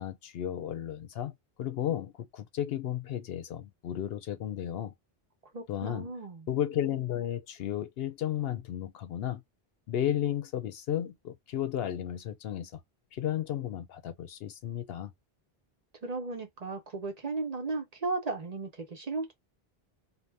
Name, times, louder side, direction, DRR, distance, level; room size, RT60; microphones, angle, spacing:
voice 1, 0.0-1.3 1.6-4.9 5.7-6.1 6.5-9.4 9.9-12.8 13.1-15.1, left 11 dB, 70° left, 0.8 m, -33 dB
voice 2, 5.5-6.5 16.0-19.3, right 3 dB, 45° right, 0.7 m, -35 dB
2.7 x 2.1 x 3.2 m
omnidirectional pair, 1.1 m